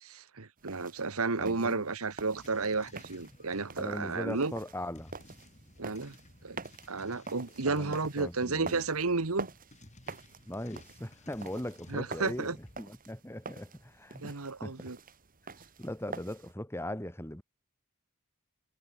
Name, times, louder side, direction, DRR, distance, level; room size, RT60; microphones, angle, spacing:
voice 1, 0.0-4.5 5.8-6.1 6.4-6.6 6.9-9.5 11.9-12.5 14.2-15.0, right 3 dB, 70° right, 1.4 m, -32 dB
sound 1, 0.6-16.5, right 4 dB, 40° right, 2.6 m, -47 dB
voice 2, 1.4-1.8 3.8-5.1 7.6-8.8 10.5-14.9 15.8-17.4, left 1 dB, 10° left, 2.9 m, -40 dB
sound 2, 2.3-12.8, left 1 dB, 35° left, 3.7 m, -56 dB
head